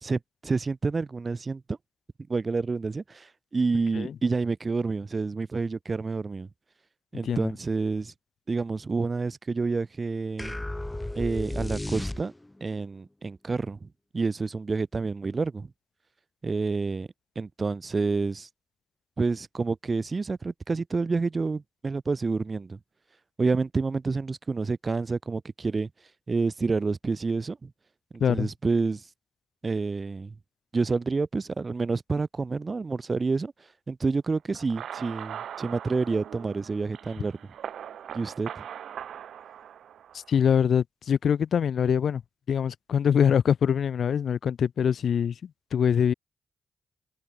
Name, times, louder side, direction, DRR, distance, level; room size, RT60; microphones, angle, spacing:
voice 1, 0.0-1.8 2.3-6.5 7.1-8.1 8.5-10.6 11.1-12.3 12.6-13.9 14.1-15.7 16.4-17.1 17.4-18.5 19.2-22.8 23.4-25.9 26.3-27.7 28.1-29.0 29.6-30.3 30.7-33.5 33.9-37.4 38.1-38.6, right 4 dB, 40° right, 4.1 m, -28 dB
sound 1, 10.4-12.7, left 1 dB, 15° left, 3.9 m, -33 dB
sound 2, 34.5-40.3, right 9 dB, 80° right, 6.3 m, -41 dB
voice 2, 40.3-42.2 42.5-45.3 45.7-46.1, left 8 dB, 70° left, 1.9 m, -23 dB
cardioid pair, 55°, 0 cm